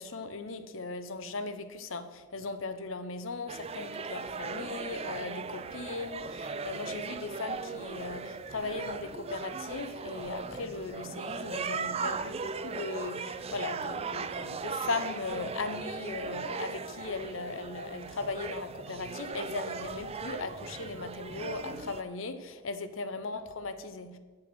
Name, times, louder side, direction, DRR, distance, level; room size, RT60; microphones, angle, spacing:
voice 1, 0.0-24.2, left 3 dB, 65° left, 10 dB, 0.8 m, -38 dB
sound 1, 3.5-22.0, right 5 dB, 30° right, 0.4 m, -38 dB
8.0 x 7.7 x 6.2 m, 1.4 s
head